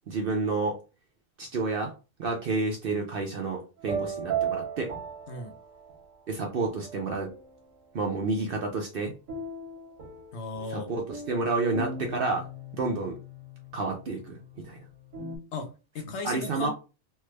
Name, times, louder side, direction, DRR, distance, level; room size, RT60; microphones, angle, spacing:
voice 1, 0.1-0.8 1.4-1.9 2.2-4.9 6.3-7.3 7.9-9.1 10.7-12.5 12.7-13.2 13.7-14.4 14.6-14.8 16.2-16.7, right 3 dB, 60° right, 0.6 m, -29 dB
sound 1, 3.8-6.2 6.7-7.7 9.3-15.4, right 5 dB, 80° right, 1.3 m, -37 dB
voice 2, 10.3-10.9 15.5-16.7, left 3 dB, 65° left, 0.8 m, -36 dB
3.3 x 2.1 x 3.1 m
omnidirectional pair, 1.4 m